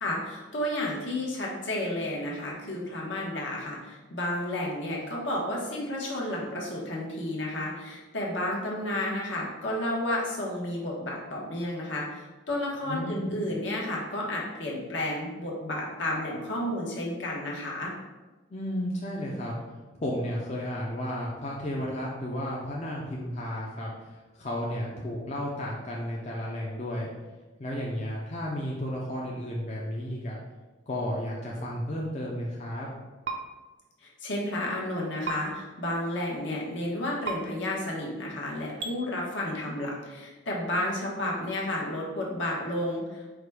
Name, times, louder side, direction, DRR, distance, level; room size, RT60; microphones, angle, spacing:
voice 1, 0.0-17.9 34.0-43.3, left 1 dB, 75° left, -3 dB, 1.1 m, -32 dB
voice 2, 12.8-13.3 18.5-19.6 20.0-27.1 27.6-30.4 30.9-32.9, equal, 35° left, -4 dB, 0.5 m, -33 dB
sound 1, 33.2-33.4 35.2-35.4 37.2-37.4 38.8-38.9, right 5 dB, 60° right, 0.5 m, -31 dB
4.9 x 2.2 x 4.7 m, 1.2 s
head